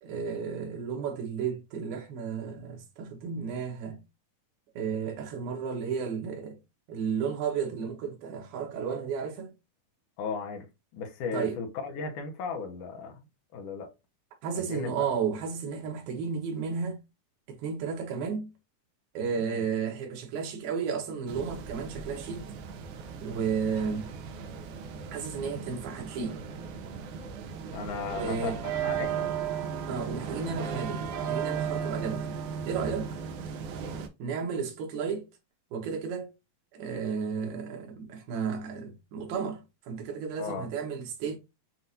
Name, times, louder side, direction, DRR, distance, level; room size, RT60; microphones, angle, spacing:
voice 1, 0.0-4.0 4.8-6.6 6.9-9.5 11.3-11.6 14.4-17.0 17.5-18.5 19.1-22.5 23.2-24.0 25.1-26.4 28.1-28.6 29.9-32.3 32.7-33.1 34.2-35.3 35.7-36.3 36.7-41.4, right 6 dB, 90° right, 3.1 m, -33 dB
voice 2, 10.2-10.7 10.9-13.2 13.5-13.9 14.6-15.2 19.4-19.6 27.7-29.4 40.4-40.7, left 5 dB, 70° left, 2.2 m, -36 dB
sound 1, 21.3-34.1, right 7 dB, 75° right, 1.9 m, -36 dB
7.6 x 2.5 x 2.7 m
omnidirectional pair, 4.1 m